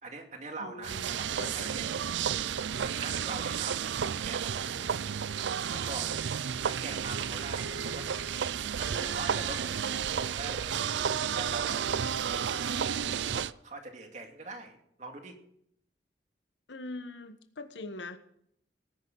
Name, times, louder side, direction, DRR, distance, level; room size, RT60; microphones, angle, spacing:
voice 1, 0.0-3.9 4.2-6.1 6.6-8.5 8.8-11.8 12.3-15.4, right 2 dB, 40° right, 3 dB, 2.4 m, -44 dB
voice 2, 0.6-1.8 16.7-18.2, left 2 dB, 85° left, 8 dB, 1.4 m, -43 dB
sound 1, 0.8-13.5, right 8 dB, 85° right, 0.5 m, -32 dB
19.0 x 11.0 x 4.1 m, 0.70 s
head